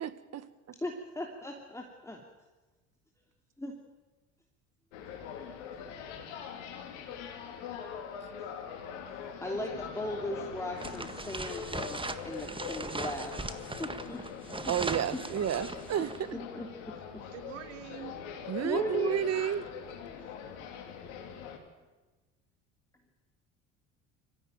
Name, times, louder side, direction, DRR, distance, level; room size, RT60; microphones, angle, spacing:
voice 1, 0.0-0.8 14.7-16.3 18.5-19.6, right 10 dB, 45° right, 13 dB, 1.7 m, -31 dB
voice 2, 0.8-2.2 3.6-3.7 5.6-5.7 9.4-14.2 14.6-14.7 16.0-16.1 16.5-16.9 18.6-19.3, left 1 dB, 10° left, 1 dB, 3.1 m, -37 dB
sound 1, 4.9-21.6, left 7 dB, 70° left, 3.4 m, -43 dB
sound 2, 10.8-16.3, right 3 dB, 15° right, 1.7 m, -39 dB
voice 3, 16.9-18.3 20.1-20.3, right 12 dB, 80° right, 10 dB, 1.7 m, -47 dB
24.5 x 15.5 x 9.1 m, 1.2 s
hypercardioid pair, 65°, 37 cm